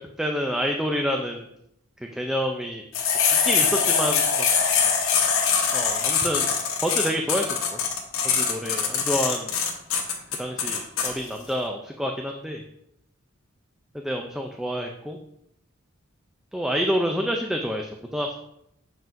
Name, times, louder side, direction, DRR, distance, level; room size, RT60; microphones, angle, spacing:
voice 1, 0.2-1.5 2.1-2.8 3.4-4.5 5.7-6.5 6.8-7.8 8.3-9.5 10.4-12.6 13.9-15.2 16.5-18.3, equal, 5° right, 2 dB, 0.4 m, -28 dB
sound 1, 2.9-11.1, left 6 dB, 90° left, 1.1 m, -23 dB
7.2 x 5.5 x 2.5 m, 0.78 s
head